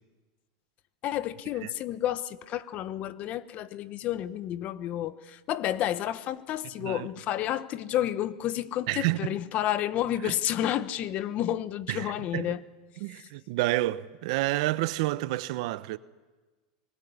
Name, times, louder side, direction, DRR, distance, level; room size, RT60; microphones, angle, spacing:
voice 1, 1.0-12.6 13.1-13.3, left 12 dB, 40° left, 1.1 m, -30 dB
voice 2, 8.9-9.2 11.9-12.5 13.0-16.0, right 18 dB, 65° right, 0.9 m, -29 dB
24.5 x 20.0 x 9.6 m
supercardioid pair, 130°, 4 cm